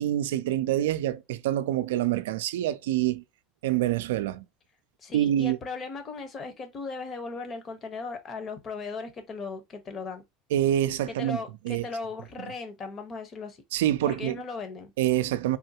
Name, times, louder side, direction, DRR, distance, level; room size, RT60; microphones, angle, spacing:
voice 1, 0.0-3.2 3.6-4.4 5.1-5.6 10.5-11.4 11.6-11.8 13.7-14.4 15.0-15.6, right 12 dB, 85° right, 0.3 m, -26 dB
voice 2, 5.0-10.2 11.1-13.6 14.1-14.9, left 4 dB, 40° left, 1.0 m, -37 dB
3.5 x 2.2 x 2.8 m
supercardioid pair, 95°, 0 cm